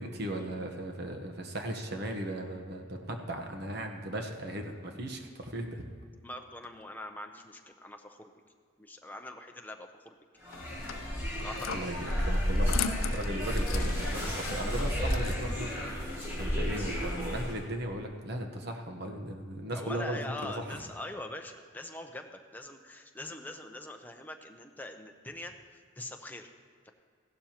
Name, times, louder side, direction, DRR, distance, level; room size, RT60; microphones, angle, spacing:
voice 1, 0.0-5.8 11.7-12.8 13.1-16.1 16.4-20.8, right 1 dB, 50° right, 4 dB, 1.1 m, -37 dB
voice 2, 6.2-8.3 8.8-10.1 11.4-12.0 19.7-26.5, left 1 dB, 10° left, 4 dB, 0.6 m, -43 dB
sound 1, 10.4-17.6, equal, 10° right, 2.9 m, -32 dB
sound 2, 10.5-15.7, left 7 dB, 85° left, 0.6 m, -40 dB
15.5 x 12.0 x 3.0 m, 2.1 s
head